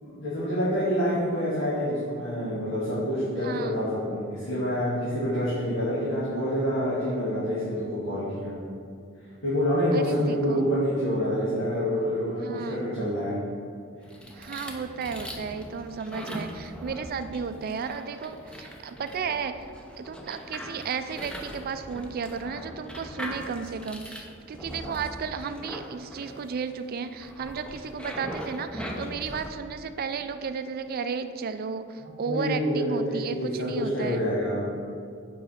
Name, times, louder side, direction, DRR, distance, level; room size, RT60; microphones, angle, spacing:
voice 1, 0.0-8.5 9.4-13.3 32.0-34.6, equal, 70° left, -10 dB, 1.8 m, -27 dB
voice 2, 3.4-3.8 9.9-10.7 12.4-12.8 14.3-19.7 20.0-34.2, right 5 dB, 50° right, 10 dB, 0.4 m, -33 dB
sound 1, 14.0-29.5, equal, 5° left, 0.5 m, -40 dB
7.1 x 4.8 x 4.3 m, 2.3 s
head